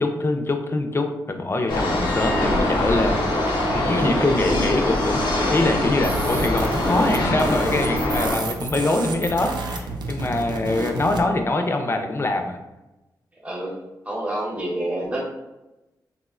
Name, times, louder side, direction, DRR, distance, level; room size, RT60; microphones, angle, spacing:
voice 1, 0.0-3.2 3.7-12.6, left 2 dB, 35° left, 5 dB, 0.4 m, -24 dB
sound 1, 1.7-8.4, left 1 dB, 85° left, 0.6 m, -23 dB
voice 2, 4.0-4.6 13.4-13.7 14.1-15.3, right 1 dB, 15° right, -5 dB, 0.8 m, -28 dB
sound 2, 6.0-11.3, right 3 dB, 75° right, 0.4 m, -30 dB
3.5 x 2.1 x 2.4 m, 1.0 s
cardioid pair, 60°, 7 cm